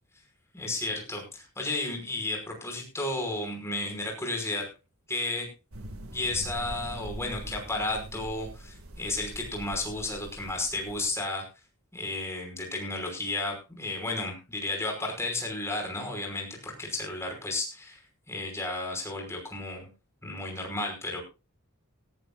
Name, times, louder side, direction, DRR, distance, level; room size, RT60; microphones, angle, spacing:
voice 1, 0.5-4.7 5.1-5.5 6.1-11.5 11.9-18.0 18.3-19.9 20.2-21.2, left 2 dB, 15° left, 1 dB, 5.5 m, -33 dB
sound 1, 5.7-11.2, right 1 dB, 75° right, 2.0 m, -43 dB
18.0 x 14.5 x 2.4 m, 0.29 s
head